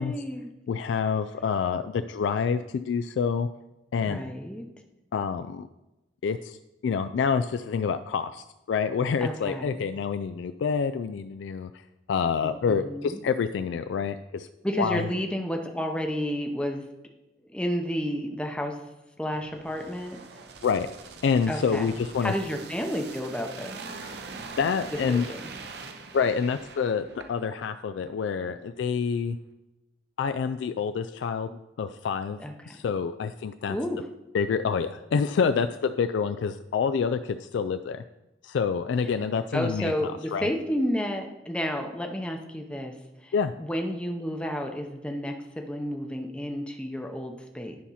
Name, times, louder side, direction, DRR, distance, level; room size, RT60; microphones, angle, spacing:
voice 1, 0.0-0.5 4.0-4.7 9.2-9.8 12.7-13.2 14.6-16.8 17.5-18.8 19.2-20.2 21.5-21.9 22.2-23.8 24.9-25.5 32.4-32.8 33.7-34.0 39.5-42.9 43.2-47.8, equal, 5° left, 3 dB, 0.7 m, -31 dB
voice 2, 0.7-3.5 3.9-4.3 5.1-5.7 6.2-6.6 6.8-11.7 12.1-14.5 14.8-15.1 20.6-20.9 21.2-22.3 24.1-24.2 24.6-25.3 26.1-29.4 30.2-32.4 32.7-33.8 34.3-38.0 38.4-40.5 43.3-43.5, left 6 dB, 85° left, 9 dB, 0.3 m, -27 dB
sound 1, 19.3-27.7 28.0-28.1, right 4 dB, 65° right, 0.8 m, -43 dB
10.5 x 4.2 x 5.6 m, 0.99 s
head